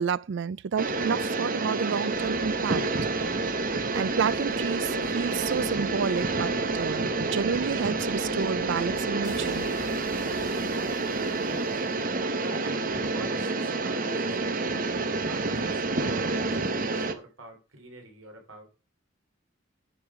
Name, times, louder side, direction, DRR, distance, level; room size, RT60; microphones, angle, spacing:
voice 1, 0.0-2.8 3.9-9.7, right 6 dB, 60° right, 0.4 m, -30 dB
sound 1, 0.8-17.1, right 3 dB, 45° right, 0.9 m, -28 dB
sound 2, 2.1-12.4, left 2 dB, 60° left, 2.3 m, -48 dB
voice 2, 11.5-12.0 12.4-14.7 15.3-18.7, right 2 dB, 85° right, 3.3 m, -46 dB
10.0 x 5.4 x 4.7 m
head